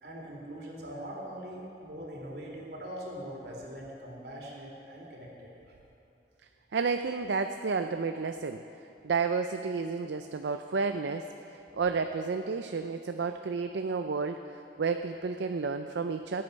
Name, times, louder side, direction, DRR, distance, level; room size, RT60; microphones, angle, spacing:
voice 1, 0.0-5.5, equal, 60° right, -2 dB, 3.0 m, -42 dB
voice 2, 6.7-8.6 9.0-11.2 11.8-14.4 14.8-16.4, right 4 dB, 80° right, 7 dB, 0.5 m, -31 dB
20.5 x 8.7 x 5.2 m, 2.8 s
head